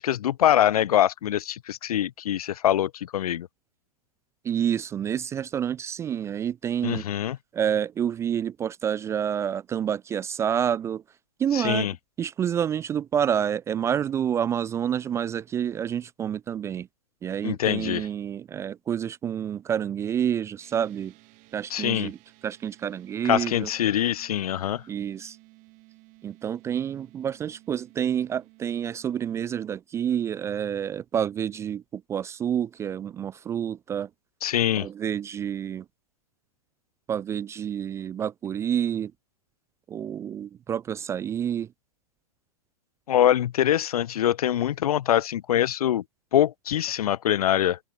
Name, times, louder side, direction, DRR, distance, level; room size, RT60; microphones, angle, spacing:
voice 1, 0.0-3.5 6.8-7.4 11.5-11.9 17.4-18.1 21.7-22.1 23.2-24.8 34.4-34.9 43.1-46.0 46.3-47.8, left 11 dB, 70° left, 0.7 m, -24 dB
voice 2, 4.4-7.0 7.5-11.0 11.4-11.9 12.2-16.9 17.2-21.1 21.5-22.2 22.4-23.7 24.9-25.4 26.2-34.1 34.8-35.9 37.1-39.1 39.9-41.7, right 9 dB, 15° right, 0.3 m, -28 dB
sound 1, 20.6-29.6, right 25 dB, 40° right, 5.8 m, -55 dB
open air
hypercardioid pair, 110°, 20 cm